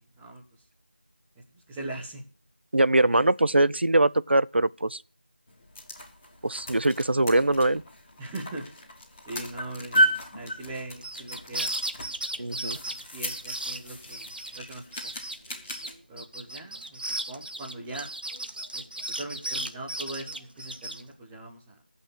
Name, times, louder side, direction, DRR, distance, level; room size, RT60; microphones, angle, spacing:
voice 1, 1.5-2.2 3.0-3.2 8.2-8.9 9.3-11.8 12.4-15.1 16.1-18.1 18.7-21.8, right 2 dB, 5° right, 0.7 m, -41 dB
voice 2, 2.7-5.0 6.4-7.8 12.4-12.8, right 2 dB, 80° right, 0.7 m, -22 dB
sound 1, 5.5-15.9, equal, 15° left, 2.4 m, -33 dB
sound 2, 11.0-14.6 14.9-15.4 15.7-21.0, right 1 dB, 60° right, 1.7 m, -35 dB
15.5 x 5.6 x 8.5 m
figure-of-eight pair, 175°, 6 cm